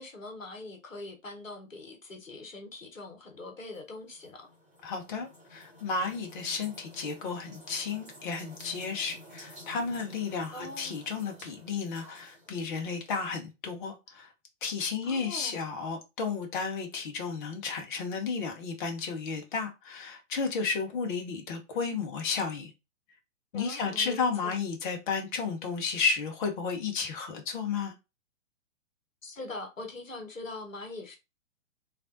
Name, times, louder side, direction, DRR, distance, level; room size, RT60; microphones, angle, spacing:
voice 1, 0.0-4.5 10.5-11.0 15.0-15.6 23.5-24.5 29.2-31.2, left 2 dB, 80° left, 0.9 m, -42 dB
sound 1, 3.7-13.3, equal, 15° right, 1.5 m, -52 dB
voice 2, 4.8-14.3 14.6-22.7 23.5-27.9, left 5 dB, 40° left, 0.8 m, -33 dB
3.3 x 2.5 x 2.5 m
figure-of-eight pair, 115°, 39 cm